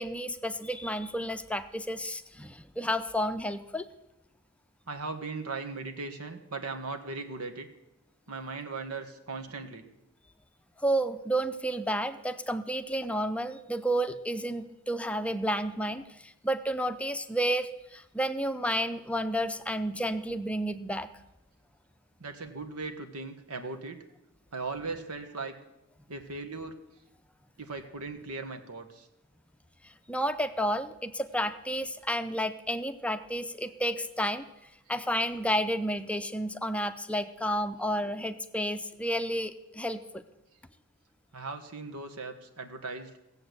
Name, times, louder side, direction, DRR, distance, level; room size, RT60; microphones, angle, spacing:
voice 1, 0.0-3.9 10.8-21.1 29.8-34.4 34.9-40.2, equal, 5° left, 9 dB, 0.5 m, -31 dB
voice 2, 4.9-7.7 8.3-9.8 22.2-24.0 24.5-25.6 26.1-26.8 27.6-29.1 41.3-43.1, right 3 dB, 90° right, 6 dB, 1.6 m, -38 dB
17.0 x 7.8 x 8.1 m, 0.92 s
head